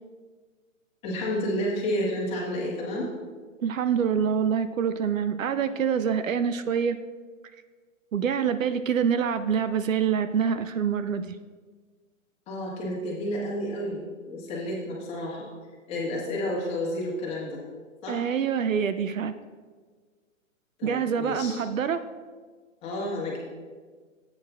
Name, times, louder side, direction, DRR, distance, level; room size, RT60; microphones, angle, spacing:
voice 1, 1.0-3.1 12.5-15.5 15.9-17.6 18.0-18.2 20.8-21.6 22.8-23.4, left 1 dB, 15° left, -4 dB, 1.5 m, -30 dB
voice 2, 3.6-7.0 8.1-11.4 18.1-19.3 20.8-22.1, right 7 dB, 70° right, 11 dB, 0.7 m, -26 dB
14.0 x 8.7 x 2.4 m, 1.5 s
hypercardioid pair, 155°, 40 cm